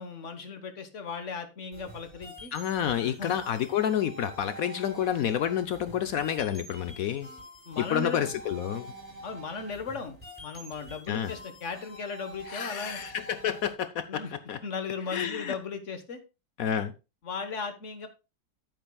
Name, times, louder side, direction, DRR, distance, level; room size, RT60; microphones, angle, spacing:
voice 1, 0.0-2.5 3.0-3.3 7.7-8.3 9.2-13.0 13.4-13.5 14.1-14.3 14.6-16.2 17.2-18.1, left 5 dB, 45° left, 8 dB, 1.4 m, -37 dB
sound 1, 1.7-13.7, right 1 dB, 5° left, 5.5 m, -47 dB
voice 2, 2.5-7.3 7.8-8.9 11.1-11.3 12.5-14.2 14.5-14.6 15.1-15.5 16.6-16.9, left 9 dB, 70° left, 11 dB, 0.9 m, -29 dB
10.5 x 8.7 x 2.3 m, 0.29 s
omnidirectional pair, 1.9 m